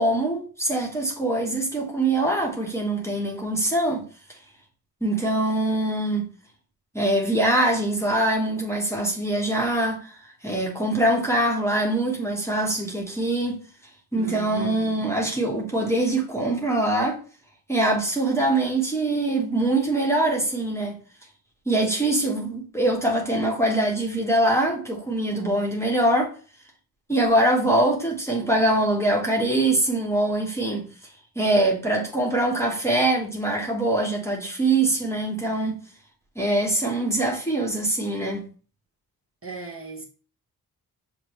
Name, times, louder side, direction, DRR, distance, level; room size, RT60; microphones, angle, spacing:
voice 1, 0.0-4.0 5.0-6.3 6.9-10.1 10.4-13.6 14.1-17.2 17.7-20.9 21.7-26.3 27.1-30.9 31.4-35.8 36.4-38.5, right 1 dB, 5° left, 1.0 m, -23 dB
voice 2, 14.1-15.0 39.4-40.0, right 4 dB, 35° right, 1.1 m, -36 dB
6.1 x 2.1 x 3.0 m
cardioid pair, 75°, 39 cm